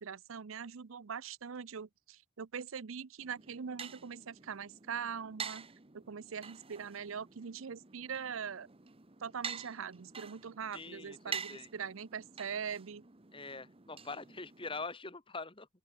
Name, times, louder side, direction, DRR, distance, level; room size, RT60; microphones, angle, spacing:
voice 1, 0.0-5.7 5.9-8.7 9.2-13.0, right 7 dB, 90° right, 0.6 m, -42 dB
sound 1, 3.2-14.8, right 6 dB, 30° right, 1.0 m, -47 dB
voice 2, 10.7-11.7 13.3-15.7, left 3 dB, 25° left, 2.6 m, -44 dB
open air
head